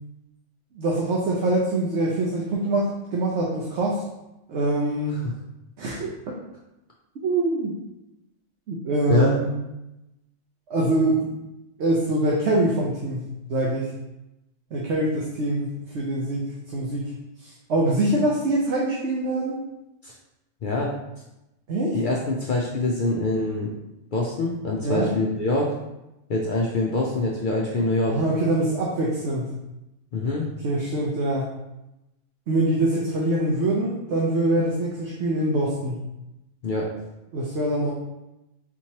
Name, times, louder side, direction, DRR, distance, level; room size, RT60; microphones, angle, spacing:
voice 1, 0.7-4.0 4.5-5.2 5.8-6.4 7.2-7.7 8.7-9.5 10.7-11.3 11.8-13.9 14.7-15.7 15.9-17.0 17.4-19.6 21.7-22.0 24.8-25.1 28.1-29.5 30.6-31.5 32.5-36.0 37.3-37.9, right 1 dB, 65° right, -3 dB, 0.9 m, -24 dB
voice 2, 21.9-23.7 24.1-25.7 26.3-28.2 30.1-30.5 36.6-36.9, left 2 dB, 60° left, -2 dB, 0.5 m, -24 dB
4.4 x 3.0 x 2.8 m, 0.93 s
omnidirectional pair, 1.3 m